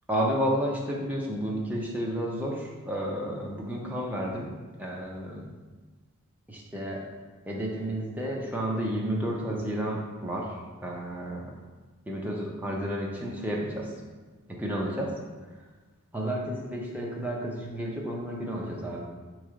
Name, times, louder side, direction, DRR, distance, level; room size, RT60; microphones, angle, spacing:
voice 1, 0.1-4.5 4.8-5.4 6.5-7.0 7.5-11.5 12.1-13.9 14.5-15.1 16.1-19.0, equal, 5° right, -3 dB, 0.5 m, -31 dB
4.4 x 3.1 x 3.7 m, 1.3 s
head